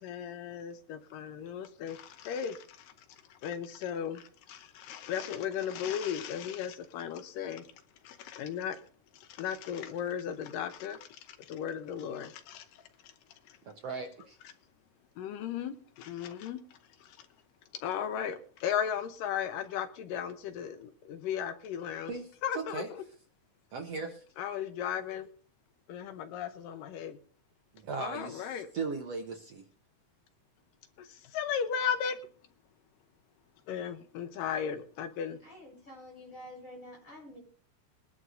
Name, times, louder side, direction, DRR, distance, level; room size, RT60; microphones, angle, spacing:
voice 1, 0.0-8.8 9.1-13.6 14.4-14.5 15.2-17.3 17.7-22.1 22.4-23.0 24.4-25.3 25.9-27.2 28.0-28.7 31.0-32.2 33.7-35.4, left 8 dB, 85° left, 2.6 m, -36 dB
voice 2, 13.7-14.4 22.1-22.2 22.7-22.9 23.7-24.2 27.7-28.5 28.7-29.6, right 4 dB, 60° right, 1.8 m, -37 dB
voice 3, 35.4-37.4, left 1 dB, 20° left, 6.7 m, -48 dB
22.5 x 11.0 x 2.6 m
omnidirectional pair, 3.8 m